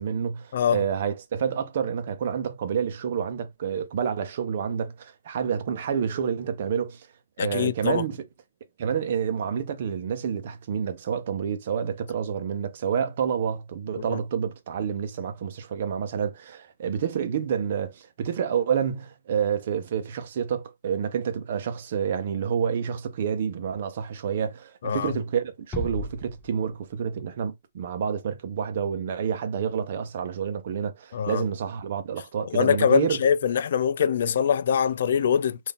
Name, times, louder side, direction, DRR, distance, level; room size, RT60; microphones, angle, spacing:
voice 1, 0.0-7.1 7.4-8.2 8.8-33.2, right 7 dB, 55° right, 0.8 m, -28 dB
voice 2, 7.4-8.0 14.1-14.2 24.8-25.1 31.1-31.4 32.5-35.6, left 8 dB, 65° left, 0.3 m, -23 dB
Bass drum, 25.7-27.1, left 2 dB, 15° left, 1.1 m, -36 dB
3.8 x 2.6 x 3.5 m
hypercardioid pair, 145°, 0 cm